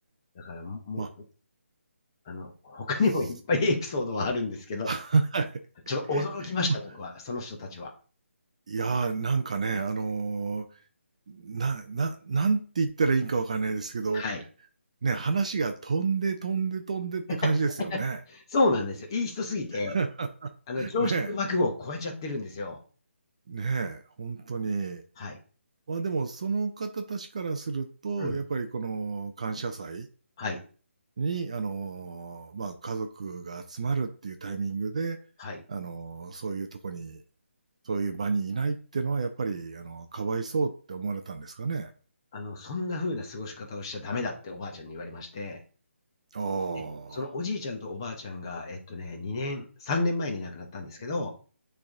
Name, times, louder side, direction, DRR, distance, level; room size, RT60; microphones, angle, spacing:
voice 1, 0.4-1.0 2.3-4.9 5.9-7.9 14.1-14.4 18.5-19.9 20.7-22.8 25.2-25.4 28.2-28.4 30.4-30.6 35.4-35.6 42.3-45.6 47.1-51.3, left 3 dB, 20° left, 0.8 m, -30 dB
voice 2, 4.8-5.5 6.1-6.2 6.7-6.8 8.7-10.8 11.3-14.2 15.0-18.2 19.7-20.5 20.8-21.3 23.5-25.0 25.9-30.1 31.2-35.2 35.7-37.2 37.8-41.9 46.3-47.3, right 4 dB, 30° right, 0.4 m, -30 dB
8.5 x 3.3 x 3.6 m
hypercardioid pair, 175°, 7 cm